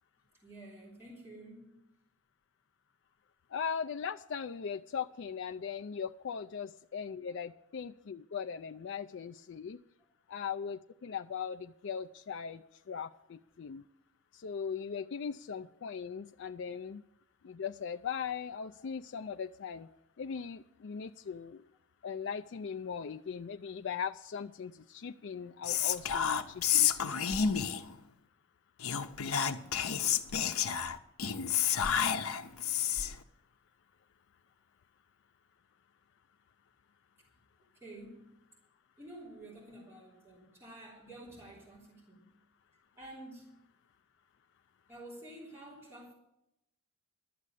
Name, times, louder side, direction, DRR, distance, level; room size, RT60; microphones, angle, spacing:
voice 1, 0.4-1.9 16.7-16.9 18.8-18.9 32.4-32.5 37.8-38.4 39.0-42.3 43.0-43.6 44.9-46.1, right 1 dB, 10° right, -6 dB, 3.2 m, -50 dB
voice 2, 3.5-9.8 10.3-13.8 14.3-17.0 17.4-19.9 20.2-21.6 22.0-27.1, left 6 dB, 55° left, 9 dB, 0.4 m, -39 dB
Whispering, 25.6-27.9 28.8-33.2, left 8 dB, 75° left, 0.8 m, -30 dB
12.0 x 7.4 x 8.3 m, 0.84 s
head